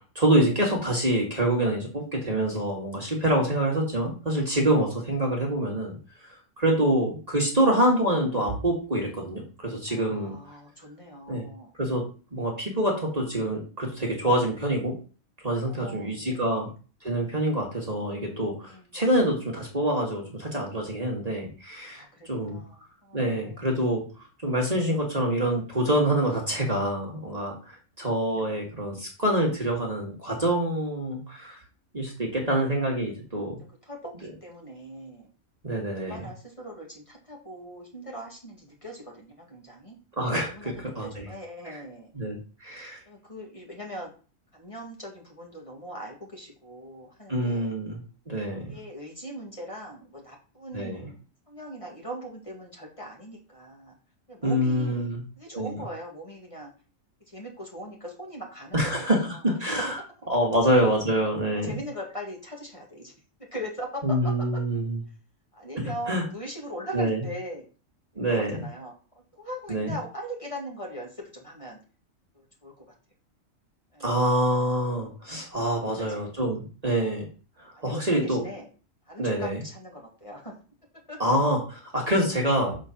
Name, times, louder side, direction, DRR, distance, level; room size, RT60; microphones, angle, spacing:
voice 1, 0.2-6.0 6.2-10.4 11.3-11.5 11.8-12.0 12.3-14.9 15.4-16.7 17.0-22.6 23.1-24.0 24.4-31.6 31.9-33.6 35.6-36.3 40.2-41.3 41.7-41.8 42.2-43.0 47.3-48.0 48.3-48.8 50.7-51.0 54.4-55.2 55.5-55.8 58.7-60.0 60.3-61.8 64.0-65.0 66.1-66.2 66.9-67.2 68.2-68.5 69.7-69.9 74.0-77.3 77.6-78.4 79.2-79.6 81.2-82.8, right 1 dB, 30° right, -2 dB, 1.8 m, -26 dB
voice 2, 9.9-11.7 15.6-16.6 18.6-18.9 21.9-23.6 28.2-28.6 33.8-35.3 35.9-40.0 40.4-42.1 43.0-44.1 44.5-47.7 48.7-53.9 54.3-55.1 55.4-56.7 57.3-59.4 61.5-63.1 63.5-64.2 64.5-64.6 65.5-67.7 68.1-71.8 72.3-72.9 73.9-74.3 75.8-76.2 76.8-77.2 77.8-78.7 79.1-80.5 81.1-81.2, equal, 25° left, -2 dB, 2.0 m, -40 dB
6.5 x 4.4 x 5.7 m, 0.36 s
omnidirectional pair, 1.4 m